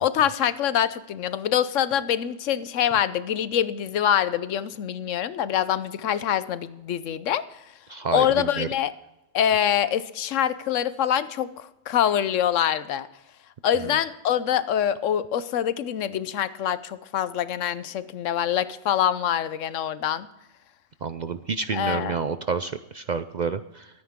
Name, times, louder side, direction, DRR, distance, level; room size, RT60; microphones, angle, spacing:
voice 1, 0.0-7.4 8.1-8.9 9.3-11.5 11.9-13.1 13.6-20.3 21.7-22.2, left 10 dB, 85° left, 15 dB, 1.1 m, -25 dB
voice 2, 7.9-8.7 13.8-13.9 21.0-23.9, right 5 dB, 55° right, 11 dB, 0.5 m, -29 dB
23.0 x 9.5 x 3.6 m, 0.95 s
omnidirectional pair, 1.3 m